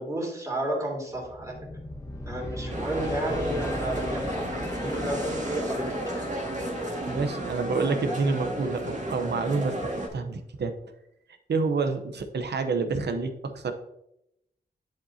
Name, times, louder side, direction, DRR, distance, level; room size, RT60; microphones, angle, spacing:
voice 1, 0.0-1.6 2.3-6.3, right 1 dB, 15° right, -2 dB, 2.9 m, -32 dB
sound 1, 1.1-10.3, left 1 dB, 15° left, 1.0 m, -38 dB
sound 2, 2.7-10.1, right 1 dB, 45° right, 1.9 m, -33 dB
voice 2, 7.1-9.8 10.1-10.7 11.5-13.7, right 4 dB, 75° right, 7 dB, 0.8 m, -28 dB
10.5 x 5.2 x 2.8 m, 0.81 s
wide cardioid pair, 80°, 18 cm